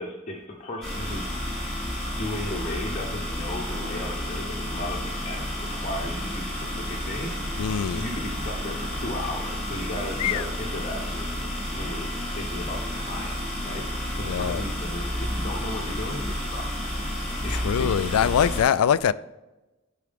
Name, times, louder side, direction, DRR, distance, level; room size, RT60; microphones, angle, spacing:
voice 1, 0.0-1.3 2.1-7.7 7.9-11.5 11.7-12.1 12.3-16.8 17.4-18.5, left 1 dB, 35° left, 1.0 m, -35 dB
sound 1, 0.8-18.6, left 1 dB, ahead, 2.7 m, -31 dB
sound 2, 4.3-14.4, equal, 20° right, 1.4 m, -50 dB
voice 2, 7.6-8.0 10.2-10.5 14.2-14.6 17.5-19.1, left 8 dB, 90° left, 0.3 m, -23 dB
11.0 x 4.6 x 3.5 m
head